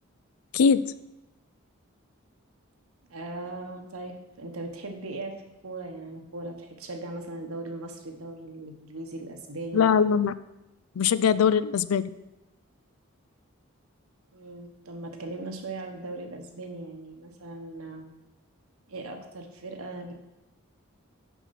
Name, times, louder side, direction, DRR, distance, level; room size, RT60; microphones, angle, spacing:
voice 1, 3.1-5.4 5.6-9.9 14.3-18.1 18.9-20.1, right 2 dB, 90° right, 4 dB, 1.2 m, -38 dB
voice 2, 9.7-10.3 11.0-12.1, left 6 dB, 90° left, 15 dB, 0.4 m, -21 dB
5.9 x 5.7 x 5.8 m, 0.98 s
head